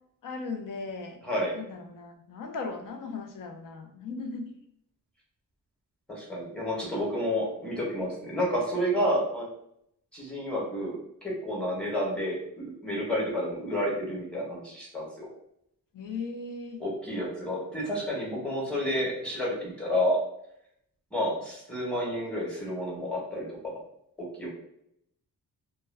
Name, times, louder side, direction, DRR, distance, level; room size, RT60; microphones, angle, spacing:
voice 1, 0.2-1.2 1.5-4.5 15.9-16.8, left 4 dB, 65° left, 4 dB, 0.6 m, -37 dB
voice 2, 6.1-9.5 10.1-15.3 16.8-20.2 21.1-23.7 24.4-24.5, equal, 5° left, -4 dB, 1.0 m, -30 dB
2.3 x 2.1 x 3.4 m, 0.75 s
cardioid pair, 100°, 35 cm